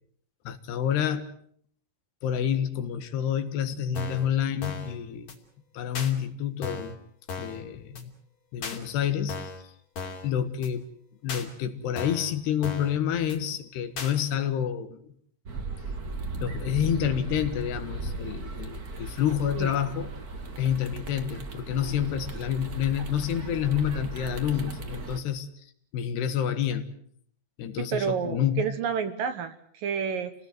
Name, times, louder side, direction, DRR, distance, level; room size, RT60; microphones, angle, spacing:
voice 1, 0.5-1.3 2.2-5.3 5.7-7.0 7.4-8.1 8.5-9.5 10.2-10.8 11.2-15.0 16.4-20.1 20.6-25.5 25.9-27.0 27.6-28.7, left 9 dB, 75° left, 9 dB, 3.6 m, -28 dB
sound 1, 4.0-4.3 4.6-4.9 5.3-5.4 6.0-6.1 6.6-7.0 7.3-7.6 8.0-8.1 8.6-8.8 9.3-9.6 10.0-10.3 10.6-10.7 11.3-11.5 12.0-12.3 12.6-13.0 13.3-13.4 14.0-14.1, left 4 dB, 45° left, 3.8 m, -36 dB
sound 2, 15.4-25.2, right 3 dB, 45° right, 1.2 m, -37 dB
voice 2, 27.8-30.3, right 7 dB, 65° right, 9 dB, 2.5 m, -30 dB
28.5 x 19.0 x 7.8 m, 0.64 s
omnidirectional pair, 4.8 m